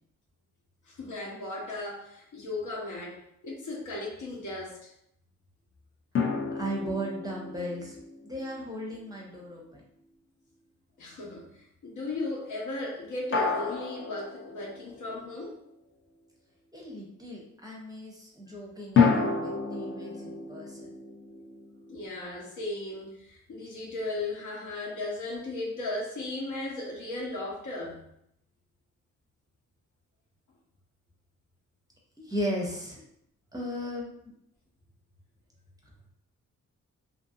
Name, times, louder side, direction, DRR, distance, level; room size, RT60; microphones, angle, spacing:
voice 1, 0.8-4.9 11.0-15.6 21.9-28.0, left 2 dB, 80° left, -3 dB, 0.9 m, -36 dB
sound 1, 6.2-9.5 13.3-15.3 19.0-22.1, left 5 dB, 45° left, 0.5 m, -30 dB
voice 2, 6.5-8.0 8.2-9.8 16.7-20.9 32.2-33.0 33.5-34.3, equal, 10° right, -3 dB, 0.6 m, -36 dB
2.6 x 2.5 x 2.6 m, 0.74 s
wide cardioid pair, 125°, 31 cm